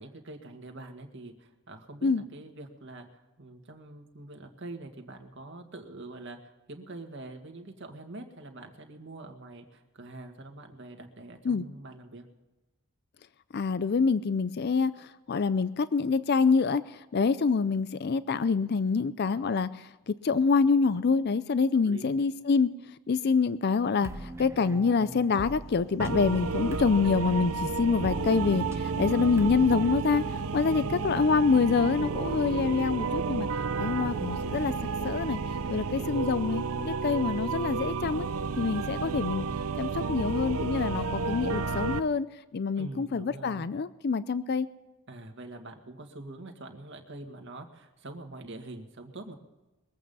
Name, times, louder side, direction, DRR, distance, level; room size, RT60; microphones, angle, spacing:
voice 1, 0.0-12.3 21.7-22.1 30.7-31.1 35.6-36.3 42.7-43.7 45.1-49.4, right 2 dB, 55° right, 4 dB, 1.9 m, -44 dB
voice 2, 13.5-22.7 23.1-30.2 30.5-33.5 33.8-34.7 35.0-35.4 35.7-38.3 38.6-39.5 39.8-42.3 42.5-44.7, left 5 dB, 50° left, 15 dB, 0.4 m, -26 dB
sound 1, 24.0-29.9, right 1 dB, 10° right, 0.6 m, -43 dB
sound 2, 26.0-42.0, right 4 dB, 75° right, 0.6 m, -31 dB
22.5 x 8.5 x 5.5 m, 1.1 s
head